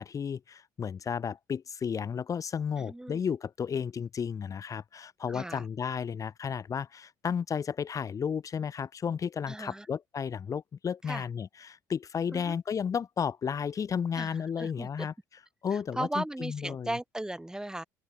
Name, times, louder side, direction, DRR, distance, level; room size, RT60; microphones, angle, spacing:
voice 1, 0.0-15.1 15.6-16.9, left 7 dB, 40° left, 2.8 m, -33 dB
voice 2, 2.8-3.3 5.3-5.6 9.5-9.9 11.1-11.3 12.3-12.6 14.2-15.1 15.7-17.8, right 1 dB, 5° right, 5.8 m, -37 dB
open air
hypercardioid pair, 70°, 9 cm